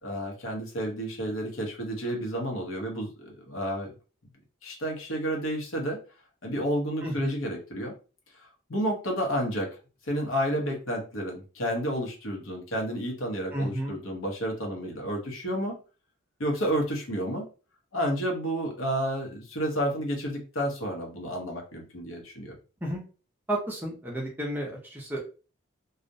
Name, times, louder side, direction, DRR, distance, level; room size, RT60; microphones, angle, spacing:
voice 1, 0.0-3.9 4.6-6.0 6.4-7.9 8.7-9.8 10.1-15.8 16.4-17.4 17.9-22.6, equal, 80° left, 1 dB, 0.8 m, -30 dB
voice 2, 7.0-7.4 13.5-14.0 22.8-23.0 23.5-25.2, right 1 dB, 10° right, -2 dB, 0.5 m, -32 dB
2.3 x 2.1 x 2.6 m, 0.34 s
head